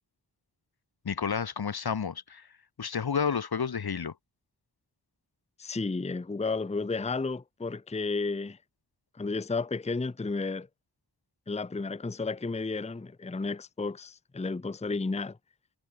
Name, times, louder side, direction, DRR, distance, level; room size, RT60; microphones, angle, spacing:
voice 1, 1.0-2.5 2.8-4.1, left 6 dB, 60° left, 0.8 m, -30 dB
voice 2, 5.6-8.6 9.1-10.7 11.5-15.4, left 3 dB, 15° left, 0.6 m, -32 dB
wide cardioid pair, 55°, 42 cm